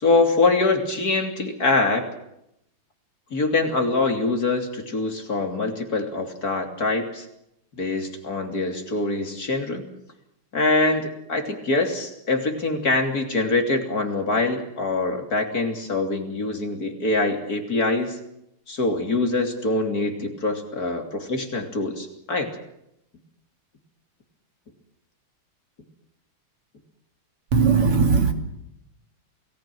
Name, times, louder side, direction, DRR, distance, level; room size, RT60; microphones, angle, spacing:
voice 1, 0.0-2.0 3.3-7.2 7.8-9.8 10.5-18.2 18.7-22.5, left 3 dB, 40° left, 4 dB, 3.5 m, -24 dB
voice 2, 27.5-28.3, right 5 dB, 85° right, 6 dB, 3.4 m, -18 dB
28.5 x 19.0 x 6.2 m, 0.79 s
omnidirectional pair, 2.4 m